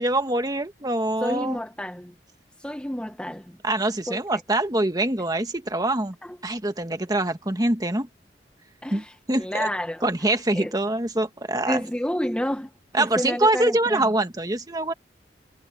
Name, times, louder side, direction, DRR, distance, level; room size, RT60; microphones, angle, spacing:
voice 1, 0.0-1.6 3.6-6.1 6.4-8.1 8.9-9.7 10.0-11.8 12.9-14.9, right 2 dB, 20° right, 1.7 m, -24 dB
voice 2, 1.2-2.1 2.6-3.6 4.1-4.2 6.2-6.4 8.8-10.1 10.5-10.7 11.7-12.7 13.0-14.1, equal, 5° left, 1.0 m, -30 dB
head